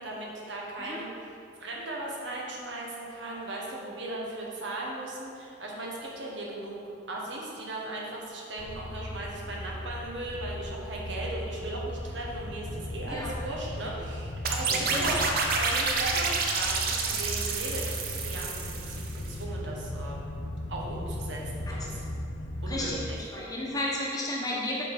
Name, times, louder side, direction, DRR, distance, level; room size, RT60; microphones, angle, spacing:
voice 1, 0.0-1.3 1.6-6.8 7.1-15.2 15.5-20.2 20.7-22.0 22.6-23.2, right 2 dB, 75° right, -3 dB, 1.4 m, -37 dB
sound 1, 8.6-23.1, left 1 dB, 70° left, 0.7 m, -37 dB
sound 2, 14.4-19.3, right 4 dB, 50° right, 0.8 m, -29 dB
voice 2, 14.7-15.3 21.7-22.0 22.7-24.8, left 1 dB, 20° left, -5 dB, 1.3 m, -33 dB
7.6 x 5.0 x 4.9 m, 2.4 s
head